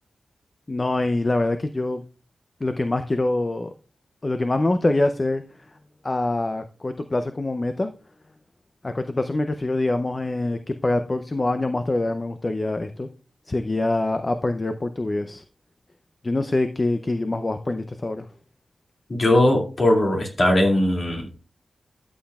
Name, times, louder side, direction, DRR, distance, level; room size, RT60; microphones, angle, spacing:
voice 1, 0.7-2.0 2.6-3.7 4.2-5.4 6.0-7.9 8.8-13.1 13.5-15.4 16.2-18.3, left 2 dB, 25° left, 8 dB, 0.5 m, -24 dB
voice 2, 19.1-21.3, left 1 dB, 45° left, 1 dB, 2.3 m, -19 dB
13.0 x 7.3 x 2.3 m, 0.35 s
wide cardioid pair, 110°, 0 cm